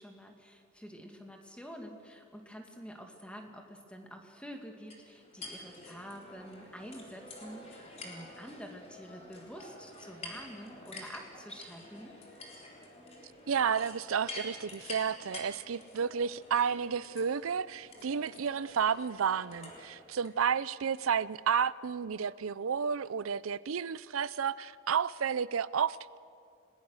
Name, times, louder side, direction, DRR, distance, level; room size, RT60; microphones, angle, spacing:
voice 1, 0.0-12.2, equal, 5° left, 2.2 m, -48 dB
sound 1, 4.9-20.3, left 2 dB, 35° left, 4.0 m, -48 dB
voice 2, 13.5-26.2, right 7 dB, 85° right, 0.5 m, -31 dB
30.0 x 20.5 x 6.4 m
head